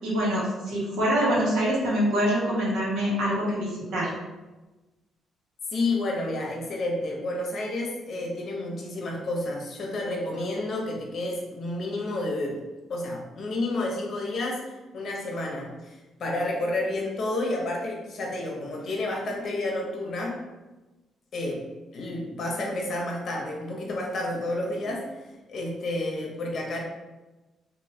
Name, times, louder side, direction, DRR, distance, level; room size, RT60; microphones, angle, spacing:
voice 1, 0.0-4.1, equal, 85° right, -6 dB, 1.2 m, -25 dB
voice 2, 5.7-12.6 12.9-20.4 21.3-21.7 21.9-25.1 25.5-26.8, left 2 dB, 55° left, -1 dB, 0.8 m, -30 dB
3.0 x 2.6 x 2.8 m, 1.1 s
cardioid pair, 90°, 0 cm